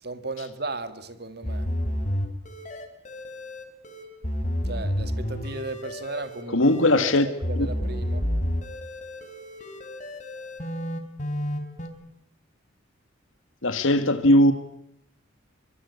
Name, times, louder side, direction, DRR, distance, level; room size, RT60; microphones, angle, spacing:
voice 1, 0.0-1.7 4.6-6.6 7.0-8.3, right 3 dB, 50° right, 2.1 m, -35 dB
sound 1, 1.4-11.9, equal, 35° left, 4.4 m, -30 dB
voice 2, 6.5-7.3 7.6-7.7 13.6-14.5, left 1 dB, 80° left, 1.8 m, -19 dB
25.0 x 24.5 x 8.4 m
head